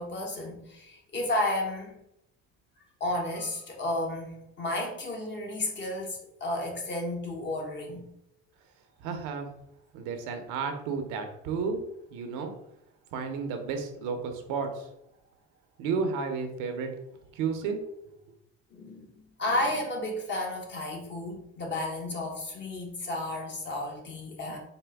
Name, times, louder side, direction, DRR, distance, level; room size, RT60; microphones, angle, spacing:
voice 1, 0.0-1.9 3.0-8.0 18.7-24.6, left 1 dB, 35° left, 0 dB, 1.2 m, -32 dB
voice 2, 9.0-9.5 9.9-11.8 12.1-12.5 13.1-14.9 15.8-16.9 17.3-17.8 18.1-18.2, right 5 dB, 80° right, 5 dB, 0.8 m, -32 dB
4.2 x 2.2 x 3.4 m, 0.83 s
cardioid pair, 105°, 30 cm